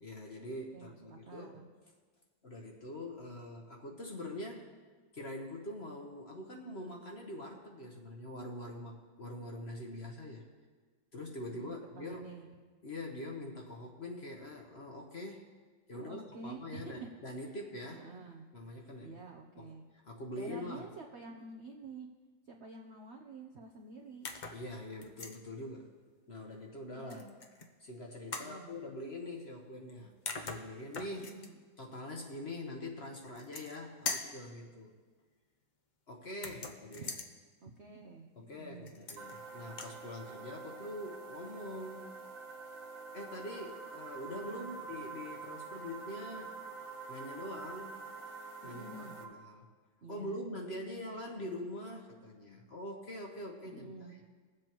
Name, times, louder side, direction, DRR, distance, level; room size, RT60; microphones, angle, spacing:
voice 1, 0.0-1.6 2.4-4.7 5.1-10.4 11.1-12.3 12.8-15.4 15.9-18.1 18.5-19.2 19.6-19.7 20.0-20.9 24.5-25.9 26.3-27.2 27.8-30.1 30.4-31.4 31.8-34.9 36.1-37.1 38.4-42.2 43.1-46.5 47.1-48.1 48.6-49.7 50.1-54.2, left 1 dB, 40° left, 1 dB, 1.0 m, -44 dB
voice 2, 0.7-1.6 11.5-12.5 15.9-16.9 17.9-18.5 19.0-19.8 20.3-22.1 22.5-24.3 27.0-27.4 28.3-28.8 31.1-31.6 36.6-36.7 37.0-37.1 37.6-38.3 38.5-39.0 44.4-44.8 48.6-49.2 50.0-50.4 53.7-54.2, right 3 dB, 55° right, 1 dB, 0.7 m, -49 dB
sound 1, 24.2-24.6 25.0-25.4 27.1-27.7 28.3-28.5 29.9-30.0 30.3-31.5 33.2-33.8 34.1-34.4 36.3-37.3 38.9-39.4 39.7-40.0, left 4 dB, 65° left, 0.4 m, -41 dB
sound 2, 39.2-49.2, right 4 dB, 90° right, 1.9 m, -47 dB
21.5 x 7.8 x 3.0 m, 1.4 s
omnidirectional pair, 2.0 m